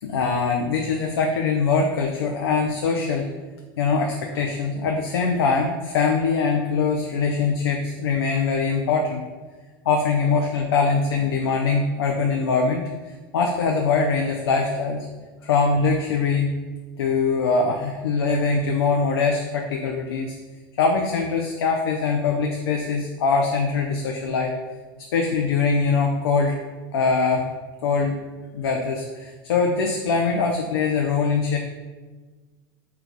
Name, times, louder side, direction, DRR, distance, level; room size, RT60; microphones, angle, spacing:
voice 1, 0.0-3.3 3.8-9.3 9.9-15.1 15.4-16.5 17.0-20.4 20.8-24.5 25.1-26.5 26.9-27.5 27.8-28.2 28.5-31.6, left 4 dB, 80° left, 1 dB, 0.4 m, -22 dB
4.5 x 2.3 x 3.8 m, 1.3 s
hypercardioid pair, 90°, 12 cm